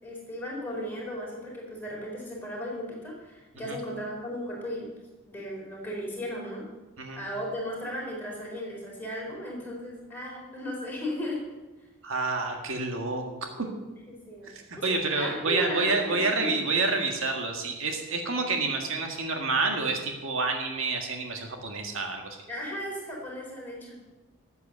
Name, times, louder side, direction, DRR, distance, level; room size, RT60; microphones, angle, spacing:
voice 1, 0.0-4.9 5.3-6.6 7.2-11.4 14.1-14.5 14.8-16.5 22.5-23.9, equal, 10° left, -4 dB, 4.1 m, -35 dB
voice 2, 12.0-13.2 13.6-13.7 14.4-22.4, right 3 dB, 70° right, 3 dB, 1.7 m, -28 dB
13.5 x 8.2 x 6.8 m, 1.1 s
head